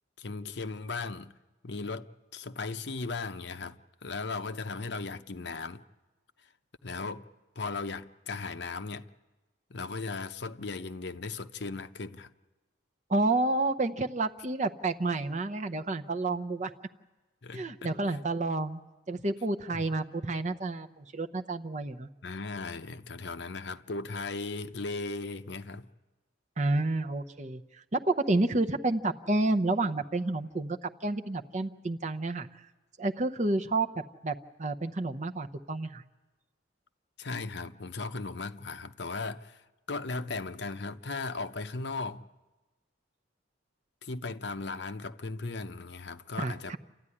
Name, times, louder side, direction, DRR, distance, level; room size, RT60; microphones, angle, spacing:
voice 1, 0.2-1.3 1.6-5.8 6.8-7.2 7.6-9.1 9.7-12.3 17.4-18.2 19.7-19.9 22.2-25.9 37.2-42.3 44.0-46.8, left 3 dB, 60° left, 0.7 m, -37 dB
voice 2, 13.1-16.7 17.5-18.8 19.1-22.1 26.6-30.8 31.0-32.5 33.0-33.9 34.2-36.0 46.4-46.8, right 2 dB, 35° right, 0.7 m, -30 dB
28.5 x 13.5 x 9.8 m
head